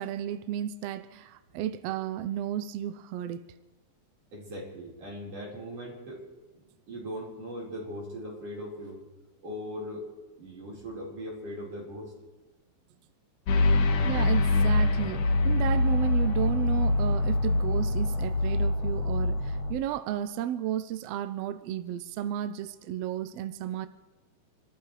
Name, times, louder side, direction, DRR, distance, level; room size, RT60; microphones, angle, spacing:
voice 1, 0.0-3.5 14.0-23.9, right 11 dB, 80° right, 1.4 m, -33 dB
voice 2, 4.3-6.2 6.5-9.0 9.4-10.1 10.4-12.1, equal, 50° right, 5.5 m, -39 dB
sound 1, 13.5-19.7, left 2 dB, 90° left, 2.6 m, -24 dB
26.5 x 14.0 x 3.3 m
omnidirectional pair, 3.4 m